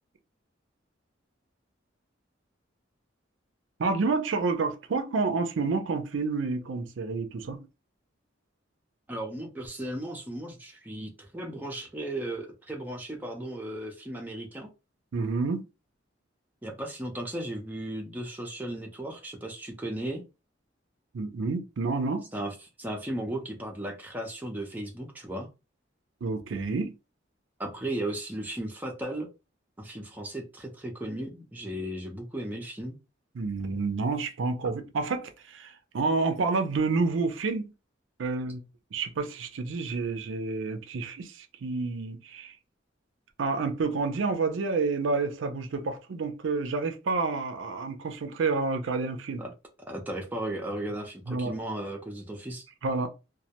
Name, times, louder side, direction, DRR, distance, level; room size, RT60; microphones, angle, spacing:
voice 1, 3.8-7.7 15.1-15.6 21.1-22.3 26.2-26.9 33.3-37.6 38.2-38.6 38.9-42.6 43.4-49.4 51.3-51.6 52.8-53.1, right 4 dB, 80° right, 0.4 m, -29 dB
voice 2, 9.1-14.7 16.6-20.2 22.3-25.5 27.6-29.3 29.8-33.0 49.4-49.5 49.9-52.7, right 1 dB, 10° right, 0.5 m, -36 dB
2.2 x 2.1 x 2.8 m
head